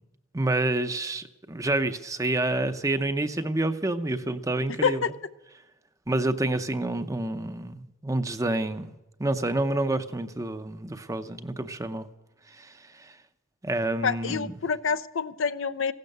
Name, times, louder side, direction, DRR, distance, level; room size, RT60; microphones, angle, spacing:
voice 1, 0.3-5.0 6.1-8.9 9.2-12.1 12.5-13.1 13.6-14.5, right 2 dB, 15° right, 9 dB, 0.7 m, -28 dB
voice 2, 14.0-15.9, left 6 dB, 70° left, 12 dB, 0.6 m, -27 dB
16.0 x 12.0 x 6.7 m, 1.0 s
head